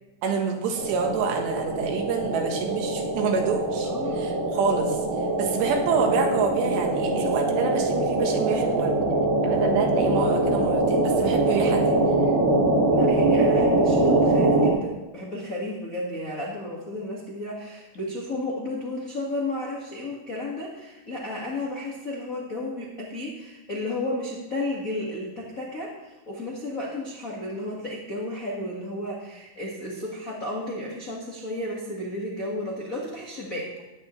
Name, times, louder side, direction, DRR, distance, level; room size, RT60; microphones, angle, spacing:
voice 1, 0.2-5.0 5.4-9.0 9.4-12.0, right 5 dB, 85° right, 2 dB, 3.6 m, -27 dB
sound 1, 0.8-14.7, right 2 dB, 60° right, 3.7 m, -23 dB
voice 2, 3.8-4.3 12.9-33.7, left 1 dB, 75° left, -5 dB, 0.7 m, -33 dB
14.5 x 11.0 x 3.2 m, 1.1 s
omnidirectional pair, 4.8 m